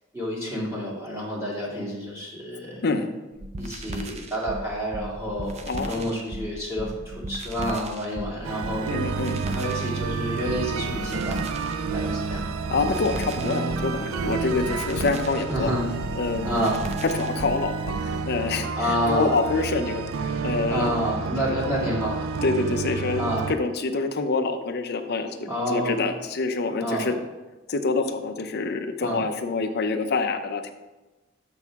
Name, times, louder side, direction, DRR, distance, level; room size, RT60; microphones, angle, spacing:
voice 1, 0.1-2.8 3.6-9.1 9.4-11.4 11.9-12.4 15.5-15.9 16.4-16.9 18.8-19.4 20.7-22.3 23.2-23.5 25.4-26.1 26.8-27.1 29.0-29.2, equal, 15° right, -6 dB, 2.1 m, -29 dB
sound 1, 3.4-18.1, right 1 dB, 35° right, 0.6 m, -35 dB
voice 2, 5.7-6.1 8.9-9.4 12.7-15.7 16.2-16.5 17.2-17.9 18.3-20.9 21.5-21.6 22.4-23.2 23.5-25.3 25.7-27.1 27.7-30.7, left 3 dB, 55° left, 7 dB, 0.6 m, -26 dB
sound 2, 8.4-23.6, right 5 dB, 85° right, 0.4 m, -30 dB
6.8 x 6.3 x 3.6 m, 1.1 s
head